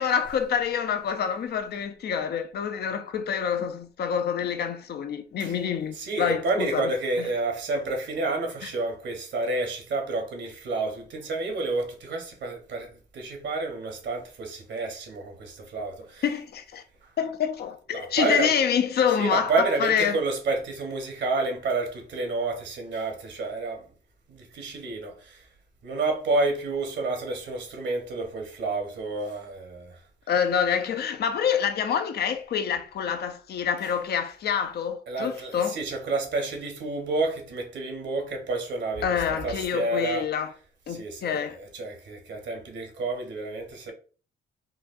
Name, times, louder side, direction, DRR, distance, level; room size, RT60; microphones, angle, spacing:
voice 1, 0.0-6.9 7.2-7.3 8.6-8.7 16.2-16.8 17.2-20.2 30.3-35.8 39.0-40.5 40.9-41.6, left 7 dB, 55° left, 0.5 m, -27 dB
voice 2, 6.0-16.2 17.9-18.5 19.2-23.8 24.3-25.4 25.8-30.0 33.8-33.9 35.1-40.2 40.9-43.9, right 3 dB, 65° right, 1.0 m, -30 dB
4.0 x 2.3 x 2.5 m
cardioid pair, 90°, 20 cm